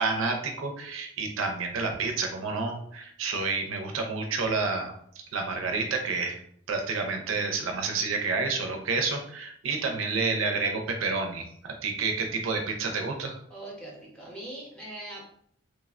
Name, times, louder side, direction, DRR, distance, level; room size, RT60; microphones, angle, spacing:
voice 1, 0.0-6.4 6.7-13.4, right 4 dB, 85° right, 4 dB, 0.5 m, -29 dB
voice 2, 13.5-15.3, right 1 dB, 5° left, -4 dB, 0.7 m, -41 dB
3.1 x 2.1 x 2.3 m, 0.67 s
head